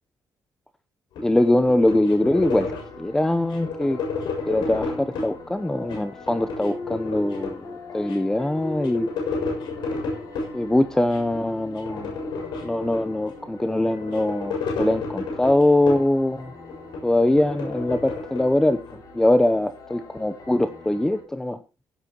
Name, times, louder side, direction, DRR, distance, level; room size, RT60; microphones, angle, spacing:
sound 1, 1.2-3.0 3.5-5.4 5.8-7.7 8.1-8.2 8.4-10.6 11.1-11.4 11.7-13.3 13.8-16.2 16.6-18.9, left 4 dB, 85° left, 6.5 m, -31 dB
voice 1, 1.2-2.7 3.0-4.0 4.5-7.6 7.9-9.1 10.5-12.1 12.6-16.5 17.0-18.8 19.1-21.6, left 1 dB, 5° left, 10 dB, 0.7 m, -22 dB
sound 2, 2.2-21.2, left 3 dB, 55° left, 6.0 m, -41 dB
16.0 x 12.5 x 3.0 m, 0.30 s
cardioid pair, 150°, 7 cm